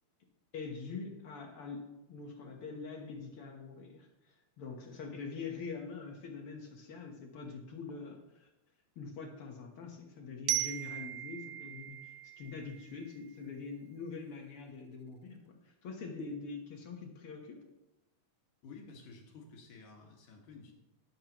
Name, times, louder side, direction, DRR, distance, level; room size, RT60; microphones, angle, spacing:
voice 1, 0.5-8.5 9.0-17.6, left 4 dB, 55° left, 2 dB, 1.7 m, -44 dB
Glockenspiel, 10.5-13.3, right 16 dB, 80° right, 1.7 m, -38 dB
voice 2, 18.6-20.7, left 4 dB, 75° left, 1 dB, 3.2 m, -52 dB
18.5 x 7.4 x 3.0 m, 0.98 s
omnidirectional pair, 3.7 m